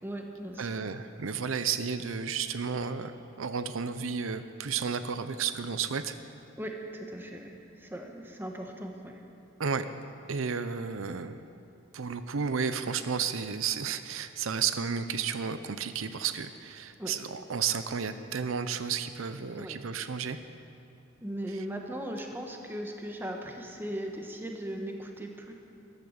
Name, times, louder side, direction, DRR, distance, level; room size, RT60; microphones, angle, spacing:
voice 1, 0.0-0.7 6.6-9.2 17.0-17.1 19.6-19.8 21.2-25.5, right 1 dB, 10° right, 2 dB, 1.3 m, -38 dB
voice 2, 0.6-6.1 9.6-9.9 10.3-11.4 11.9-20.4 21.5-21.6, right 6 dB, 85° right, 11 dB, 0.6 m, -32 dB
14.0 x 12.0 x 6.5 m, 2.7 s
head